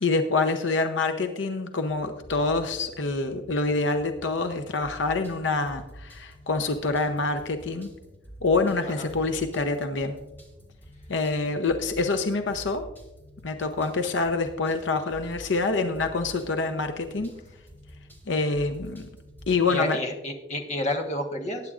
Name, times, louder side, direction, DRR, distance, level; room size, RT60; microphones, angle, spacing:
voice 1, 0.0-7.9 8.4-10.2 11.1-12.8 13.4-17.3 18.3-19.1 19.5-20.0, left 3 dB, 75° left, 7 dB, 0.7 m, -26 dB
sound 1, 1.9-19.6, equal, 10° left, 1.9 m, -48 dB
voice 2, 19.7-21.6, left 1 dB, 40° left, 4 dB, 1.2 m, -30 dB
19.5 x 9.4 x 2.5 m, 1.0 s
head